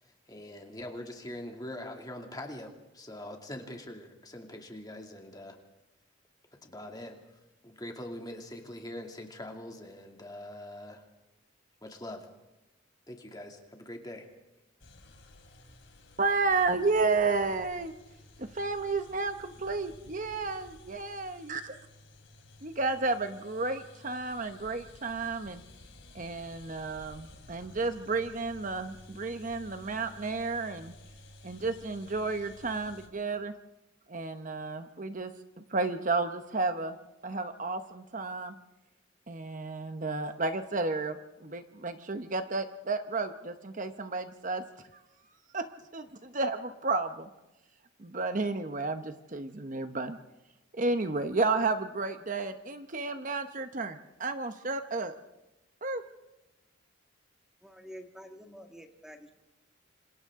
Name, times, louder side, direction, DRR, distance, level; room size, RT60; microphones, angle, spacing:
voice 1, 0.0-5.6 6.6-7.2 7.6-11.0 11.8-12.3 13.1-14.3, left 1 dB, 20° left, 2 dB, 2.5 m, -43 dB
sound 1, 14.8-33.1, left 1 dB, 65° left, 3.6 m, -53 dB
voice 2, 16.2-17.9 18.4-21.7 22.6-25.6 26.1-30.9 31.4-33.5 34.1-37.0 37.2-38.6 39.3-44.6 45.5-45.7 45.9-47.3 48.0-50.2 50.7-55.1 55.8-56.0, right 3 dB, 40° right, 8 dB, 0.9 m, -32 dB
voice 3, 57.6-59.3, equal, 5° right, 4 dB, 1.8 m, -48 dB
28.0 x 26.5 x 3.7 m, 0.97 s
head